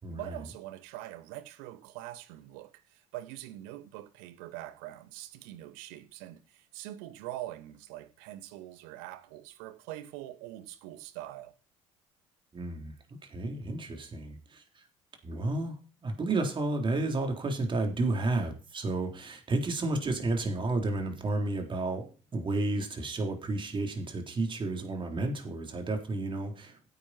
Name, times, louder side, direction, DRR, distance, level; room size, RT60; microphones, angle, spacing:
voice 1, 0.1-11.5, right 14 dB, 65° right, 1.4 m, -43 dB
voice 2, 12.5-14.8 15.2-26.9, right 2 dB, 30° right, 3.9 m, -32 dB
15.5 x 9.6 x 4.5 m
figure-of-eight pair, 55°, 16 cm